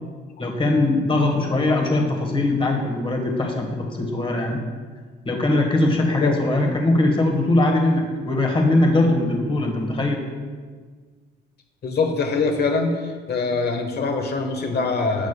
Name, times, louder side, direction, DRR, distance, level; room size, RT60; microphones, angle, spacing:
voice 1, 0.4-4.6 5.2-10.3, left 2 dB, 25° left, 2 dB, 1.3 m, -21 dB
voice 2, 11.8-15.3, left 4 dB, 55° left, 5 dB, 1.2 m, -23 dB
11.5 x 8.2 x 2.3 m, 1.5 s
cardioid pair, 90°, 20 cm